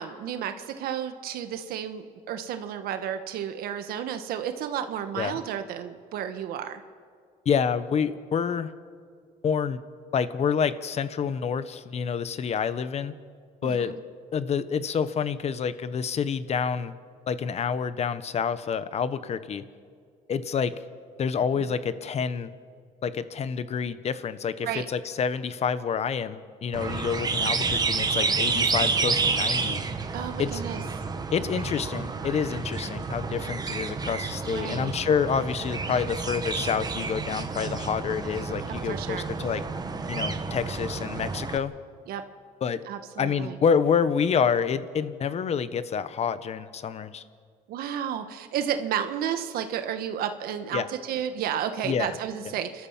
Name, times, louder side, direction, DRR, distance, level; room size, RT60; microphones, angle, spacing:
voice 1, 0.0-6.8 13.6-13.9 24.6-24.8 30.1-30.8 34.5-34.9 38.7-39.3 42.1-42.2 42.9-43.6 47.7-52.9, right 9 dB, 75° right, 8 dB, 1.4 m, -32 dB
voice 2, 7.4-8.7 9.4-9.8 10.1-13.1 13.6-13.9 14.3-16.9 17.3-19.6 20.3-20.7 21.2-22.5 23.0-29.8 30.4-30.6 31.3-39.6 40.1-41.7 42.6-42.8 43.2-47.2 50.7-50.9 51.8-52.1, left 6 dB, 45° left, 14 dB, 1.1 m, -28 dB
sound 1, 26.7-41.6, right 4 dB, 25° right, 1.3 m, -30 dB
29.5 x 13.0 x 7.3 m, 2.1 s
cardioid pair, 110°, 16 cm